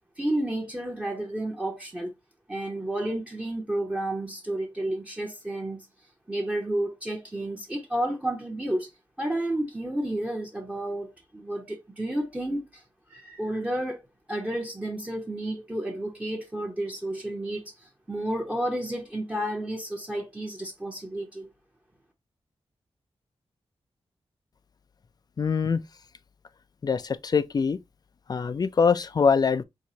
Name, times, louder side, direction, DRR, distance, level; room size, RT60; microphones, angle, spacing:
voice 1, 0.2-2.1 2.5-5.9 6.3-8.9 9.2-12.8 13.1-14.0 14.3-21.5, right 1 dB, 15° right, 0.9 m, -31 dB
voice 2, 25.4-25.8 26.8-27.8 28.3-29.6, left 5 dB, 40° left, 0.4 m, -23 dB
4.6 x 3.0 x 2.7 m
wide cardioid pair, 120°, 10 cm